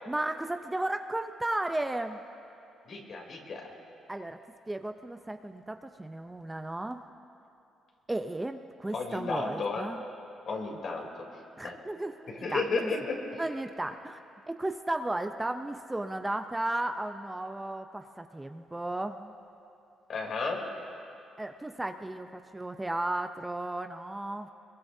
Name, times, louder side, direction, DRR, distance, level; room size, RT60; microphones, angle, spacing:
voice 1, 0.1-2.2 4.1-4.4 4.7-7.0 8.1-10.0 11.6-12.9 13.4-19.3 21.4-24.5, right 1 dB, 15° right, 7 dB, 0.6 m, -34 dB
voice 2, 2.8-3.7 8.9-9.9 10.5-11.1 11.6-11.7 12.3-13.4 20.1-20.6, left 4 dB, 60° left, 0 dB, 3.2 m, -33 dB
23.5 x 21.5 x 2.7 m, 2.7 s
cardioid pair, 90°, 0 cm